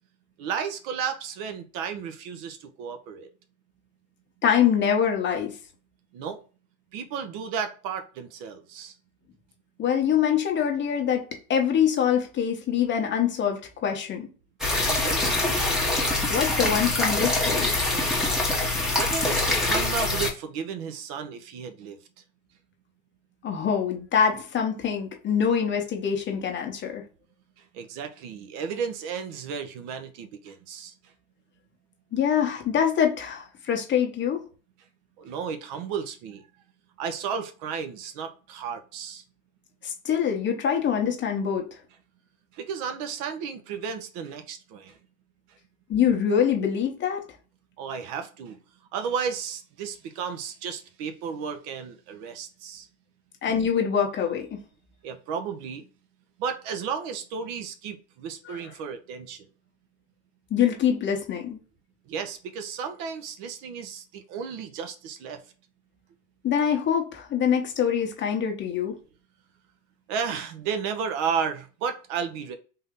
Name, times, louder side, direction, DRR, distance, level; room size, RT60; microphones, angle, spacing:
voice 1, 0.4-3.3 6.1-6.4 6.9-9.0 14.8-15.6 18.9-22.0 27.6-30.9 35.2-36.5 37.0-39.2 42.5-45.0 47.8-48.6 48.9-52.9 55.0-55.9 56.4-59.5 62.1-65.4 70.1-72.6, right 6 dB, 55° right, 0.9 m, -33 dB
voice 2, 4.4-5.5 9.8-14.3 16.3-17.7 23.4-27.0 32.1-34.4 39.8-41.7 45.9-47.2 53.4-54.5 58.4-58.6 60.5-61.6 66.4-69.0, left 8 dB, 25° left, 0.9 m, -24 dB
sound 1, 14.6-20.3, left 2 dB, ahead, 0.9 m, -24 dB
3.7 x 2.7 x 3.6 m
supercardioid pair, 120°, 42 cm